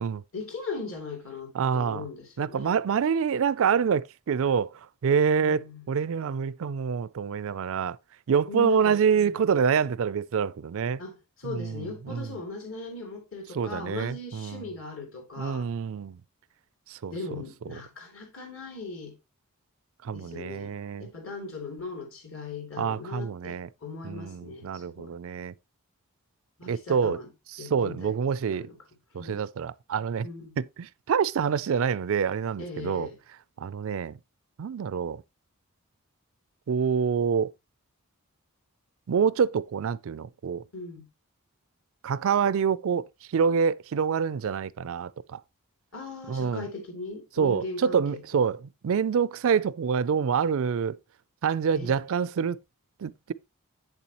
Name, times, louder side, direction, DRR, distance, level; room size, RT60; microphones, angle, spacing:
voice 1, 0.3-2.7 5.4-5.9 8.5-9.4 11.0-15.7 17.1-19.2 20.1-20.7 21.0-25.2 26.6-27.3 27.6-28.2 28.5-28.8 29.2-29.4 30.2-30.6 32.6-33.2 40.7-41.0 45.9-48.2 51.7-51.9, left 3 dB, 60° left, 3.2 m, -39 dB
voice 2, 1.5-2.0 2.4-8.0 8.3-11.0 11.4-12.3 13.5-14.6 15.4-16.2 16.9-17.1 17.7-17.8 20.0-21.1 22.8-23.7 24.0-25.5 26.7-27.2 27.6-28.7 29.1-30.3 30.6-33.1 33.6-34.2 34.6-35.2 36.7-37.5 39.1-40.6 42.0-45.4 46.3-46.7 47.4-51.0 51.4-52.6 53.0-53.3, right 6 dB, 65° right, 0.4 m, -26 dB
8.2 x 7.0 x 2.9 m
head